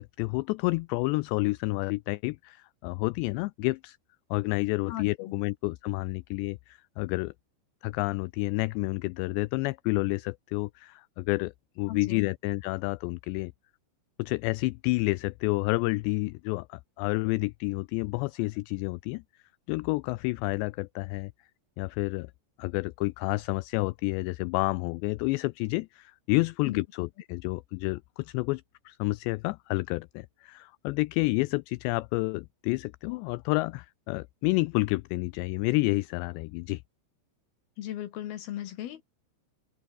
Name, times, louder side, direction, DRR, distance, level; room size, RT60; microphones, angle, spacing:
voice 1, 0.0-4.0 4.3-7.3 7.8-13.5 14.2-19.2 19.7-21.3 21.8-22.3 22.6-36.8, left 24 dB, 85° left, 2.5 m, -29 dB
voice 2, 4.9-5.3 11.9-12.3 26.7-26.8 37.8-39.0, left 12 dB, 65° left, 2.9 m, -37 dB
omnidirectional pair, 5.4 m